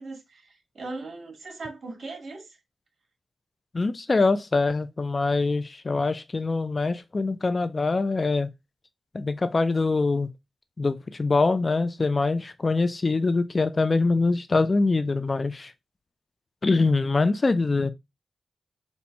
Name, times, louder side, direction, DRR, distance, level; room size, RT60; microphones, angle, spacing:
voice 1, 0.0-2.6, right 3 dB, 60° right, 1.9 m, -39 dB
voice 2, 3.7-8.5 9.1-10.3 10.8-15.7 16.6-17.9, left 3 dB, 40° left, 0.4 m, -24 dB
4.3 x 2.3 x 4.0 m
cardioid pair, 80°, 0 cm